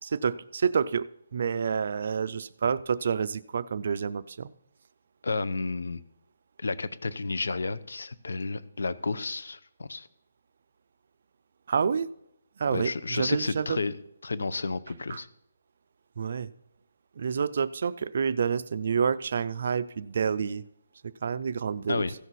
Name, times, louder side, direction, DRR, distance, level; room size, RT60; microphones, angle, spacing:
voice 1, 0.0-4.5 11.7-12.1 12.6-13.8 15.1-15.2 16.2-16.5 17.2-20.6 21.2-22.0, right 6 dB, 40° right, 15 dB, 0.4 m, -28 dB
voice 2, 5.2-6.0 6.6-10.1 12.7-13.9 14.2-15.3 21.9-22.1, left 3 dB, 85° left, 14 dB, 0.7 m, -31 dB
15.5 x 6.3 x 4.1 m, 0.75 s
hypercardioid pair, 180°, 0 cm